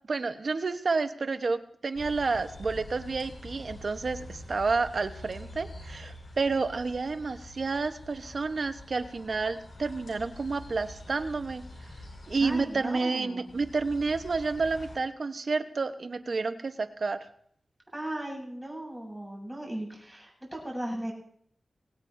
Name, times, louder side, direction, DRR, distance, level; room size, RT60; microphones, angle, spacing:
voice 1, 0.1-11.6 12.3-17.2, right 4 dB, 60° right, 9 dB, 1.0 m, -30 dB
sound 1, 1.9-13.1 13.5-15.0, left 1 dB, 80° left, 5.5 m, -46 dB
voice 2, 12.4-13.5 17.9-21.1, right 1 dB, 10° right, -2 dB, 8.0 m, -37 dB
22.5 x 17.0 x 2.7 m, 0.63 s
wide cardioid pair, 85°, 0 cm